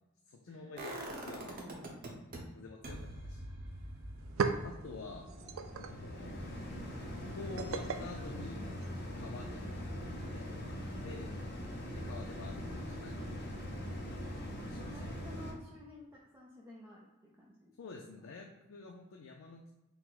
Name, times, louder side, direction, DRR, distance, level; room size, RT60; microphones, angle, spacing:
voice 1, 0.3-1.7 2.5-3.4 4.6-5.2 5.8-6.4 7.0-8.6 9.0-9.7 10.3-10.8 11.0-11.3 11.9-13.5 14.6-15.2 17.8-19.7, left 4 dB, 75° left, 1 dB, 0.5 m, -49 dB
sound 1, 0.8-2.4 2.8-8.7 9.0-9.1, right 1 dB, 45° right, 0.8 m, -47 dB
voice 2, 1.4-2.0 14.8-17.7, left 2 dB, 10° right, -5 dB, 0.5 m, -54 dB
sound 2, 3.7-3.8 4.0-9.2, right 5 dB, 75° right, 0.4 m, -40 dB
sound 3, 4.3-15.5, equal, 55° left, 0.8 m, -42 dB
4.6 x 2.1 x 4.0 m, 1.0 s
head